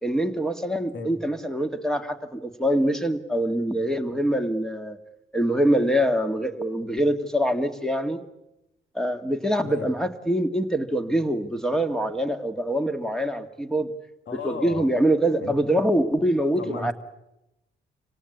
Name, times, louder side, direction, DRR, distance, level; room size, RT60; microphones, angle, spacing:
voice 1, 0.0-5.0 5.3-8.2 8.9-13.9 14.3-16.9, right 1 dB, 5° left, 7 dB, 2.1 m, -24 dB
voice 2, 14.3-14.9 15.4-15.5 16.6-16.9, left 4 dB, 65° left, 8 dB, 3.0 m, -34 dB
26.5 x 18.0 x 9.8 m, 0.91 s
cardioid pair, 90°, 20 cm